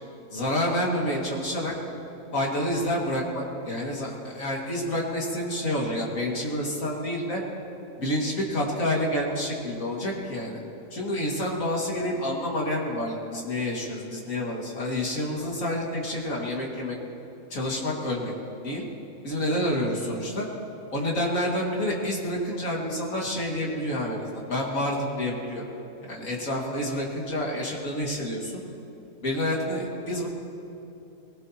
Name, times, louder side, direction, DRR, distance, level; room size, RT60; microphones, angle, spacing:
voice 1, 0.3-1.7 2.3-7.4 8.0-10.6 10.9-17.0 17.5-18.3 18.6-18.8 19.2-20.5 20.9-25.6 26.1-28.6 29.2-30.3, left 1 dB, 65° left, -2 dB, 2.7 m, -28 dB
22.5 x 17.5 x 3.0 m, 2.9 s
omnidirectional pair, 1.5 m